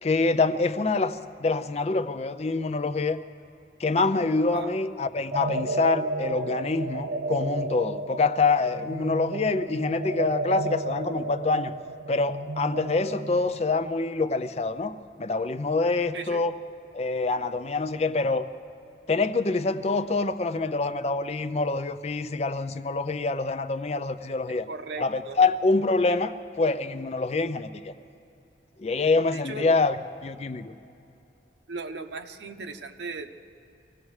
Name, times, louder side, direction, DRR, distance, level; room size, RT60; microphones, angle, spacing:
voice 1, 0.0-3.2 3.8-11.7 12.1-16.6 16.9-18.5 19.1-24.7 25.0-27.9 28.8-30.7, left 3 dB, 35° left, 11 dB, 0.5 m, -26 dB
sound 1, 5.3-13.6, right 2 dB, 65° right, 0.4 m, -33 dB
voice 2, 24.5-25.4 29.3-29.8 31.7-33.3, right 4 dB, 85° right, 6 dB, 0.8 m, -37 dB
25.0 x 17.5 x 3.2 m, 2.7 s
head